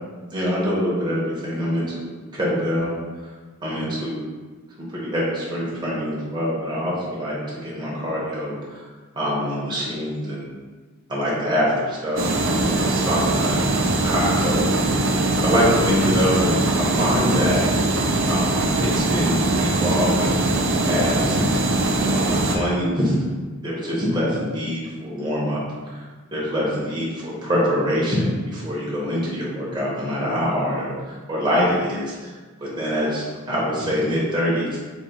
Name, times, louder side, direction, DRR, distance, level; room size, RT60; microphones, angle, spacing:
voice 1, 0.3-3.0 3.6-4.3 4.9-7.3 7.6-8.9 9.1-10.5 11.1-17.6 18.3-20.4 20.9-21.5 22.0-23.1 23.6-26.0 26.3-32.2 32.6-34.8, equal, 20° right, -6 dB, 0.8 m, -24 dB
sound 1, 12.2-22.6, right 2 dB, 60° right, 0.5 m, -21 dB
2.9 x 2.8 x 4.2 m, 1.3 s
head